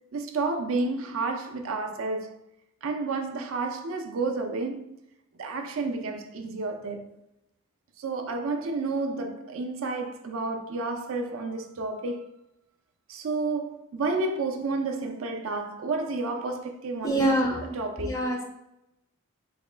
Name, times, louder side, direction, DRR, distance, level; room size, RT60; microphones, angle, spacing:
voice 1, 0.1-2.4 2.8-5.0 5.4-7.2 8.0-12.3 13.1-17.4 17.7-18.2, right 3 dB, 65° right, 0.4 m, -31 dB
voice 2, 17.0-18.4, right 1 dB, 15° left, 0.4 m, -26 dB
4.1 x 2.1 x 3.2 m
head